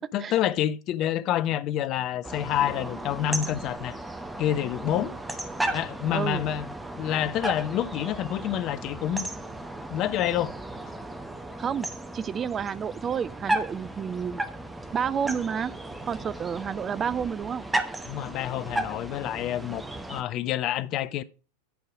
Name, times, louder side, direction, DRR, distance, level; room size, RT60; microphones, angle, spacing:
voice 1, 0.1-4.0 4.4-5.2 5.7-6.7 7.0-9.3 9.9-10.5 18.0-19.8 20.1-21.2, left 11 dB, 35° left, 0.5 m, -28 dB
sound 1, 2.2-20.2, right 1 dB, 5° right, 0.9 m, -35 dB
voice 2, 6.1-6.4 11.6-11.9 12.1-14.4 14.9-15.7 16.1-17.6, right 7 dB, 20° right, 0.4 m, -30 dB
10.5 x 4.7 x 4.8 m
figure-of-eight pair, 90°, 0 cm